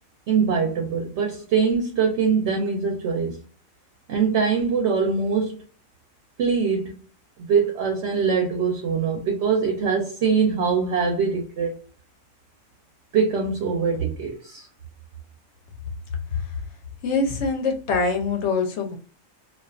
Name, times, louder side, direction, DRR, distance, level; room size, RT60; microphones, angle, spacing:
voice 1, 0.3-3.4 4.1-5.6 6.4-7.0 7.5-11.7 13.1-14.7, right 5 dB, 65° right, 0.8 m, -23 dB
voice 2, 17.0-19.0, left 4 dB, 65° left, 0.8 m, -24 dB
2.4 x 2.3 x 2.3 m
omnidirectional pair, 1.4 m